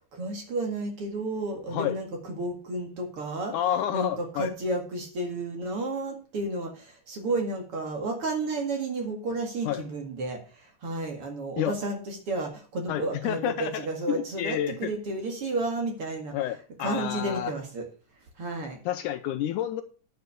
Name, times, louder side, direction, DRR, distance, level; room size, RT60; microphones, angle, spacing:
voice 1, 0.1-3.5 3.9-16.4 16.8-17.8 18.4-18.8, right 2 dB, 45° right, 2 dB, 2.6 m, -32 dB
voice 2, 3.5-4.5 9.7-9.8 11.6-11.8 12.9-14.9 16.3-17.5 18.9-19.8, left 11 dB, 75° left, 9 dB, 2.0 m, -29 dB
9.5 x 6.6 x 6.7 m, 0.37 s
omnidirectional pair, 3.9 m